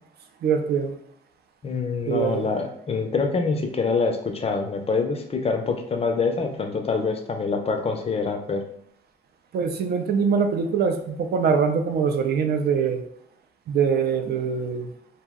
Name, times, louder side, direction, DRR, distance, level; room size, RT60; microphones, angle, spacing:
voice 1, 0.4-0.9 2.1-2.5 9.5-13.0 13.7-14.9, right 6 dB, 55° right, 6 dB, 0.4 m, -23 dB
voice 2, 1.6-8.6, left 4 dB, 30° left, 4 dB, 0.4 m, -25 dB
2.6 x 2.0 x 3.5 m, 0.67 s
cardioid pair, 90°, 20 cm